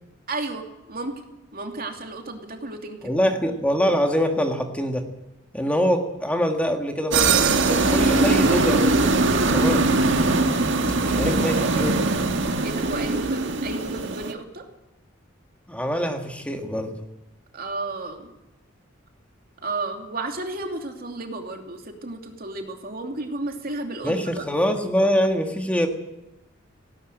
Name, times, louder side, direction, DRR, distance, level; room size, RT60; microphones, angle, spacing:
voice 1, 0.3-1.2 1.5-3.1 11.0-11.5 12.6-14.7 17.5-18.3 19.6-24.4, right 2 dB, 50° right, 4 dB, 2.8 m, -33 dB
voice 2, 3.0-5.0 5.5-8.9 9.5-9.8 11.2-11.9 15.7-17.0 24.0-25.9, equal, 5° left, 4 dB, 1.9 m, -24 dB
sound 1, 7.1-14.3, right 3 dB, 65° right, 1.8 m, -21 dB
18.0 x 17.5 x 8.9 m, 0.97 s
head